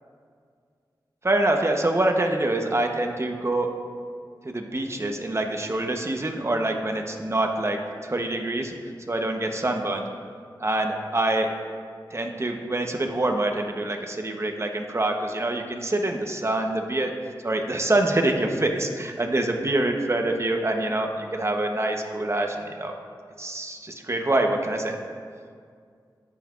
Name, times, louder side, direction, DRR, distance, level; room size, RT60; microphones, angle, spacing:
voice 1, 1.2-3.7 4.4-8.7 9.1-10.0 10.6-11.5 12.1-17.1 17.4-22.9 23.4-25.0, right 2 dB, 35° right, 3 dB, 0.9 m, -25 dB
16.5 x 5.8 x 2.5 m, 2.1 s
cardioid pair, 55°, 8 cm